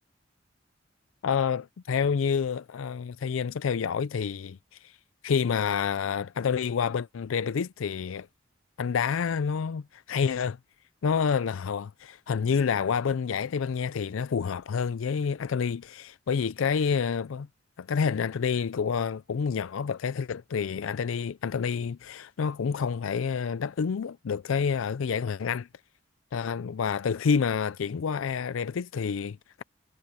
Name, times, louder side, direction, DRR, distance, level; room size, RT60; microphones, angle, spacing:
voice 1, 1.2-4.9 5.2-8.3 8.8-10.6 11.0-17.5 17.8-25.7 26.3-29.6, left 6 dB, 90° left, 0.4 m, -28 dB
head